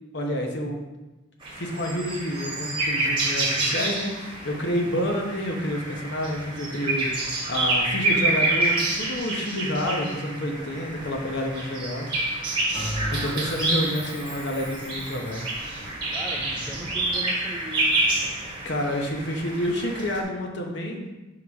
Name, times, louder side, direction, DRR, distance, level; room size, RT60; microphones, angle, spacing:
voice 1, 0.1-0.8 1.6-12.4 13.1-15.4 18.6-21.1, equal, 60° left, 1 dB, 0.9 m, -29 dB
sound 1, 1.4-20.2, right 2 dB, 25° right, 1.3 m, -28 dB
Bell, 12.7-15.5, equal, 25° left, 0.8 m, -36 dB
voice 2, 12.7-13.2 16.1-18.0, equal, 5° right, 1 dB, 0.4 m, -39 dB
5.7 x 4.8 x 3.5 m, 1.1 s
head